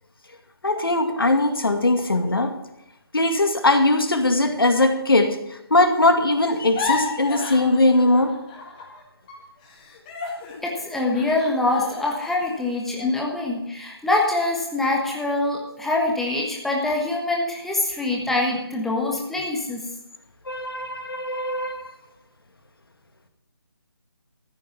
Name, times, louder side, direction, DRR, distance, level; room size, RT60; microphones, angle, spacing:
voice 1, 0.6-2.5 3.1-5.4 5.7-8.4 8.6-8.7 13.0-13.1 20.5-22.0, left 2 dB, 65° left, 5 dB, 2.2 m, -20 dB
sound 1, 6.5-9.0 9.3-13.7 14.1-14.3 14.7-15.2, left 4 dB, 20° left, 2.1 m, -34 dB
voice 2, 10.6-19.8, left 2 dB, ahead, -1 dB, 1.3 m, -24 dB
14.0 x 8.6 x 5.9 m, 0.89 s
figure-of-eight pair, 150°, 13 cm